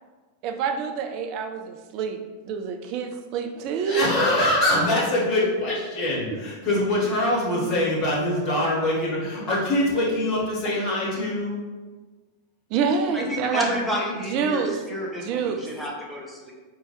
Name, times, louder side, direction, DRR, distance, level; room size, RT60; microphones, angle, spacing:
voice 1, 0.4-4.9 6.0-6.4 7.6-7.8 8.5-8.6 12.7-13.7 14.3-14.9 15.2-15.7, right 6 dB, 40° right, 6 dB, 0.3 m, -27 dB
voice 2, 3.8-11.6, left 1 dB, 30° left, -4 dB, 1.2 m, -24 dB
voice 3, 13.1-16.5, equal, ahead, -4 dB, 0.8 m, -30 dB
4.1 x 2.2 x 3.1 m, 1.3 s
figure-of-eight pair, 90°, 0 cm